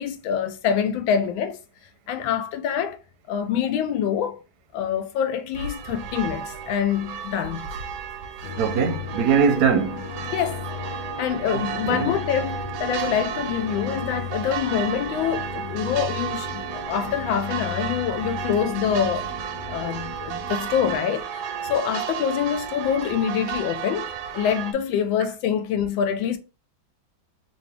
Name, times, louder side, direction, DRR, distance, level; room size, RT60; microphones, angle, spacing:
voice 1, 0.0-1.6 2.1-3.0 3.3-4.4 4.7-7.7 10.3-10.6 11.2-19.3 19.7-24.1 24.3-26.4, left 8 dB, 80° left, 1.3 m, -25 dB
sound 1, 5.5-24.7, right 8 dB, 90° right, 1.4 m, -33 dB
sound 2, 8.4-21.0, left 6 dB, 60° left, 0.7 m, -36 dB
voice 2, 8.6-10.1 11.5-12.1, right 6 dB, 65° right, 1.0 m, -22 dB
3.9 x 2.5 x 3.3 m
omnidirectional pair, 2.1 m